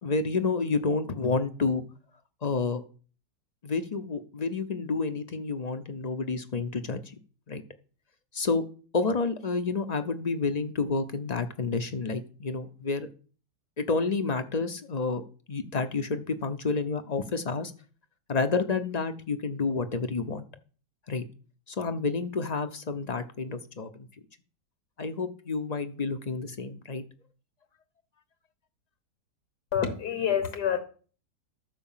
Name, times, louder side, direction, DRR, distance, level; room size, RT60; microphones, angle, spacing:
voice 1, 0.0-1.8 2.4-2.8 3.6-7.0 7.5-7.6 8.3-8.6 8.9-13.1 13.8-15.2 15.5-17.7 18.3-20.4 21.1-21.2 21.7-24.1 25.0-27.0, left 4 dB, 45° left, 10 dB, 0.5 m, -29 dB
voice 2, 29.7-30.8, left 8 dB, 75° left, 8 dB, 1.8 m, -27 dB
12.5 x 4.8 x 7.3 m, 0.40 s
omnidirectional pair, 1.8 m